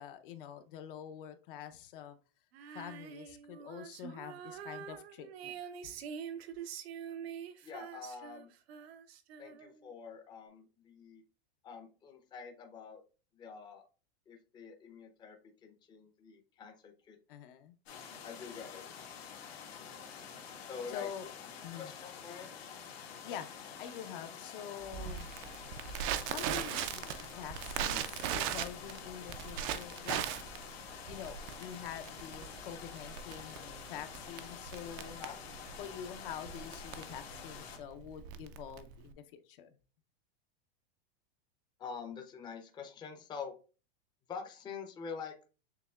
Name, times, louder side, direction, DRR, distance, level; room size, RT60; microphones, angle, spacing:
voice 1, 0.0-2.2 2.7-5.9 17.3-17.7 20.9-21.3 21.6-21.9 23.2-25.3 26.3-30.2 31.1-35.2 35.8-39.8, left 9 dB, 60° left, 8 dB, 0.7 m, -46 dB
Female singing, 2.5-9.9, right 8 dB, 75° right, 0.8 m, -46 dB
voice 2, 7.6-8.5 9.4-11.2 11.6-13.0 13.3-13.8 14.3-15.4 15.6-17.2 18.2-18.9 20.7-21.1 21.8-22.5 35.2-35.4 41.8-43.5 44.3-45.3, left 6 dB, 15° left, 4 dB, 0.6 m, -46 dB
sound 1, 17.9-37.8, left 7 dB, 85° left, 1.5 m, -48 dB
Crackle, 24.9-39.1, right 9 dB, 35° right, 0.4 m, -39 dB
6.8 x 2.9 x 2.3 m, 0.35 s
supercardioid pair, 140°, 31 cm